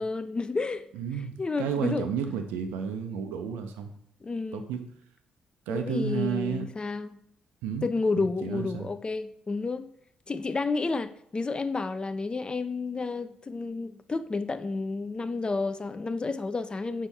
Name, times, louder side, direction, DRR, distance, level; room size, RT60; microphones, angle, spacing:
voice 1, 0.0-0.9 1.4-2.0 4.2-4.7 5.7-7.2 7.8-9.9 10.3-17.1, left 3 dB, 30° left, 0.3 m, -31 dB
voice 2, 0.9-3.9 4.5-4.8 5.7-6.7 7.6-7.9 8.2-8.9, right 7 dB, 75° right, 0.4 m, -32 dB
5.3 x 2.7 x 3.4 m
hypercardioid pair, 45°, 3 cm